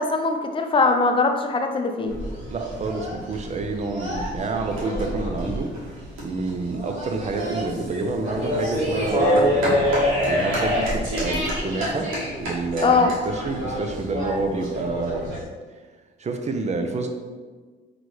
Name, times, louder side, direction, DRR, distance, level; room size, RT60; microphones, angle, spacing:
voice 1, 0.0-2.1 12.8-13.1, left 3 dB, 25° left, 5 dB, 0.5 m, -21 dB
sound 1, 2.1-15.4, equal, 85° right, 1.4 m, -26 dB
voice 2, 2.5-5.7 6.2-12.1 12.4-15.4 16.2-17.1, right 3 dB, 35° right, 5 dB, 0.5 m, -28 dB
4.0 x 3.0 x 3.2 m, 1.4 s
cardioid pair, 90°, 20 cm